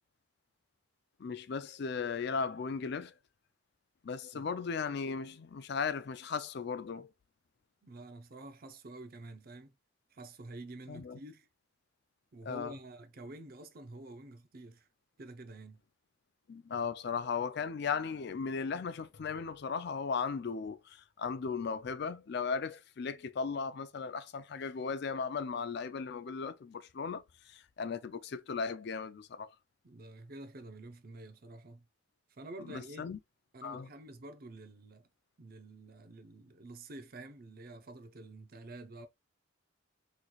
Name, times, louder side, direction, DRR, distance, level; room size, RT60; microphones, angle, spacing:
voice 1, 1.2-3.1 4.0-7.1 10.9-11.2 12.4-12.7 16.5-29.5 32.7-33.2 33.6-33.9, left 5 dB, 55° left, 0.4 m, -37 dB
voice 2, 7.8-9.8 10.1-11.5 12.3-14.9 15.2-15.8 29.8-31.9 32.3-33.1 33.5-35.1 35.4-39.1, right 2 dB, 45° right, 0.6 m, -49 dB
4.1 x 3.1 x 2.3 m
head